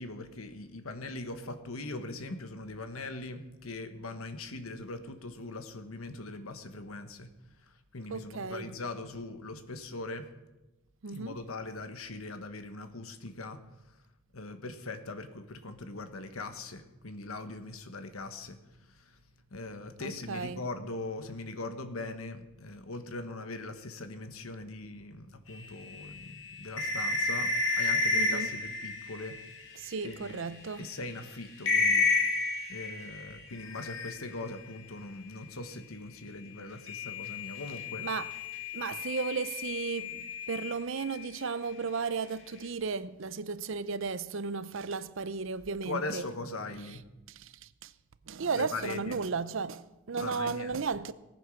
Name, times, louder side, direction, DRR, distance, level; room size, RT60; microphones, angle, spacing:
voice 1, 0.0-7.3 7.9-10.2 11.1-13.6 14.3-18.6 19.5-27.5 27.8-29.4 30.0-30.4 30.8-32.1 32.7-38.0 45.8-47.0 48.6-49.2 50.2-50.8, left 2 dB, 80° left, 1.3 m, -40 dB
voice 2, 8.1-8.7 11.0-11.4 20.0-20.6 28.1-28.6 29.8-30.9 38.0-38.3 38.7-46.2 47.3-47.9 48.3-51.1, right 5 dB, 60° right, 0.6 m, -35 dB
sound 1, 25.8-30.1 30.7-30.8 31.1-31.3 31.6-34.5 36.9-41.3, left 3 dB, 60° left, 2.5 m, -31 dB
18.0 x 9.1 x 6.3 m
head